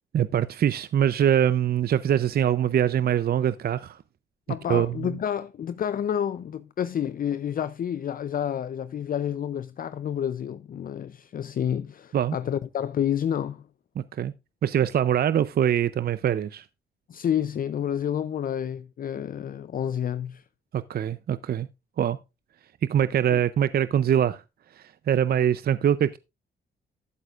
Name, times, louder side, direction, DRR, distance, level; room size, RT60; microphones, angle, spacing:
voice 1, 0.1-4.0 4.7-5.1 12.1-12.3 14.0-14.3 14.6-16.7 20.7-21.7 22.0-22.2 22.9-24.4 24.8-26.2, right 9 dB, 55° right, 0.5 m, -23 dB
voice 2, 4.5-13.6 17.1-20.4 23.3-23.4, left 9 dB, 50° left, 0.4 m, -29 dB
12.5 x 8.0 x 2.4 m
cardioid pair, 75°, 19 cm